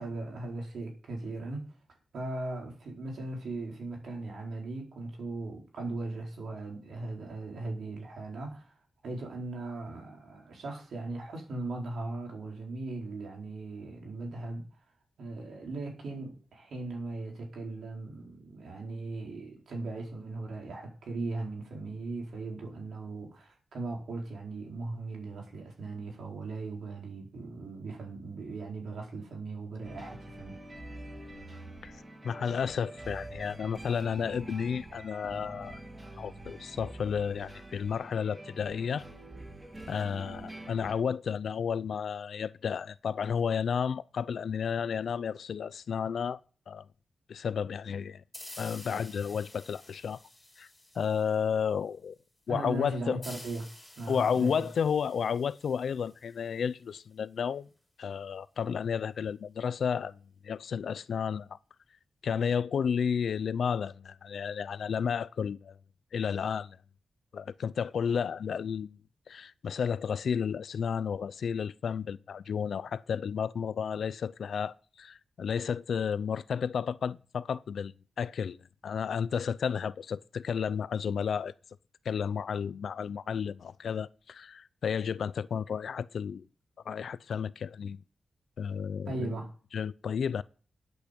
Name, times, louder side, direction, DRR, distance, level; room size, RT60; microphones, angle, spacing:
voice 1, 0.0-1.7 2.1-8.8 9.0-14.7 15.2-30.6 52.5-54.6 89.1-89.5, right 2 dB, 80° right, 4.4 m, -38 dB
sound 1, 29.8-40.9, right 1 dB, 20° right, 7.8 m, -46 dB
voice 2, 32.2-35.8 36.2-39.0 39.9-46.4 46.7-46.9 47.3-48.2 48.6-50.2 50.6-50.7 50.9-52.2 52.5-53.2 54.1-57.7 58.0-61.6 62.2-65.7 66.1-66.8 67.3-69.0 69.3-78.6 78.8-81.5 82.0-86.5 86.9-88.0 88.6-89.4 89.7-90.4, left 7 dB, 75° left, 0.5 m, -32 dB
sound 2, 48.3-51.7 53.2-56.7, left 1 dB, 10° left, 4.0 m, -51 dB
13.0 x 8.5 x 5.3 m
wide cardioid pair, 130°, 0 cm